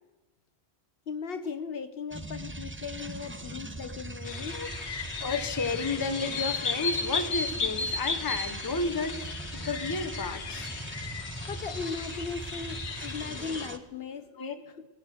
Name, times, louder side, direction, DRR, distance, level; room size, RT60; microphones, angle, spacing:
voice 1, 1.1-4.7 10.7-10.8 11.5-14.9, left 5 dB, 65° left, 11 dB, 1.0 m, -38 dB
sound 1, 2.1-13.8, right 2 dB, 15° right, 0.6 m, -40 dB
sound 2, 4.3-13.7, left 5 dB, 90° left, 1.3 m, -35 dB
voice 2, 5.2-9.3 9.5-10.7 14.4-14.6, left 3 dB, 20° left, 8 dB, 0.8 m, -32 dB
20.0 x 7.0 x 7.7 m, 1.1 s
omnidirectional pair, 1.1 m